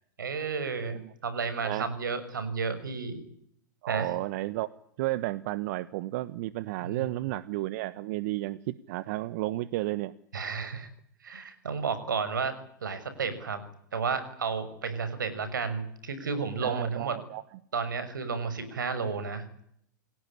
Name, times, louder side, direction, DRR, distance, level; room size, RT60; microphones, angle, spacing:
voice 1, 0.2-3.2 3.9-4.1 6.8-7.0 10.3-10.9 11.2-12.5 12.8-13.6 13.9-17.2 17.7-19.4, right 5 dB, 85° right, 12 dB, 6.3 m, -32 dB
voice 2, 3.8-4.7 5.0-10.1 16.6-17.4, right 17 dB, 55° right, 16 dB, 1.2 m, -32 dB
29.5 x 17.5 x 9.9 m, 0.71 s
hypercardioid pair, 110°, 10 cm